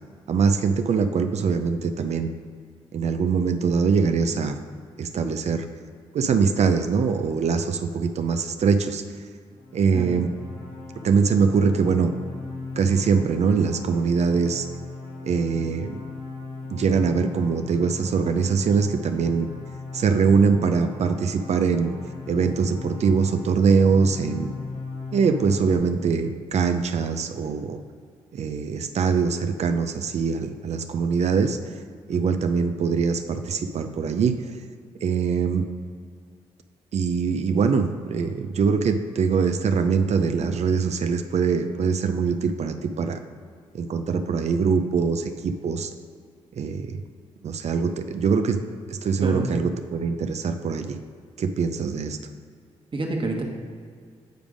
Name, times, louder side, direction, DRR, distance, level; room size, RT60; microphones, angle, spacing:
voice 1, 0.3-2.3 2.9-4.6 5.0-5.7 6.1-9.0 9.7-10.3 11.0-12.1 12.8-14.7 15.2-16.0 16.7-19.5 19.9-21.9 22.3-24.5 25.1-27.8 28.3-31.8 32.1-34.6 35.0-35.7 36.9-43.2 43.7-45.9 46.5-47.0 47.4-48.6 48.9-51.0 51.4-52.2, right 5 dB, 60° right, 7 dB, 0.5 m, -23 dB
sound 1, 9.5-25.8, left 3 dB, 85° left, 1.4 m, -38 dB
voice 2, 52.9-53.4, right 2 dB, 40° right, 0 dB, 1.4 m, -28 dB
9.1 x 3.5 x 5.0 m, 2.1 s
supercardioid pair, 55°, 13 cm